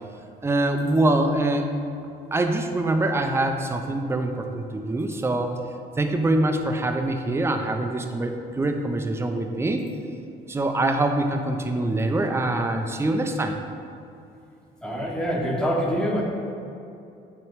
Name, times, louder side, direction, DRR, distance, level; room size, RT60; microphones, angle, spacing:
voice 1, 0.4-1.7 2.3-5.5 6.0-9.8 10.5-13.5, right 2 dB, 15° right, 5 dB, 0.5 m, -24 dB
voice 2, 14.8-16.2, equal, 5° left, -2 dB, 1.0 m, -25 dB
9.0 x 3.0 x 4.6 m, 2.7 s
cardioid pair, 110°, 17 cm